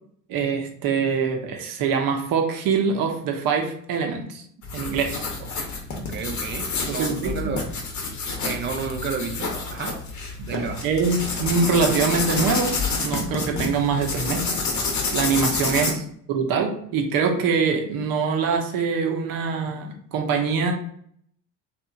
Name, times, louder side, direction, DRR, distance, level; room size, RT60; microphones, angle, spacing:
voice 1, 0.3-4.4 4.7-5.3 6.9-7.5 10.4-14.5 15.1-16.0 16.3-20.7, right 5 dB, 45° right, 4 dB, 0.7 m, -24 dB
sound 1, 4.6-15.9, left 4 dB, 40° left, 0.8 m, -28 dB
voice 2, 6.0-7.7 8.4-10.0 10.5-10.9 15.7-16.0, right 5 dB, 25° right, 6 dB, 0.3 m, -32 dB
2.8 x 2.4 x 2.3 m, 0.64 s
hypercardioid pair, 60°, 46 cm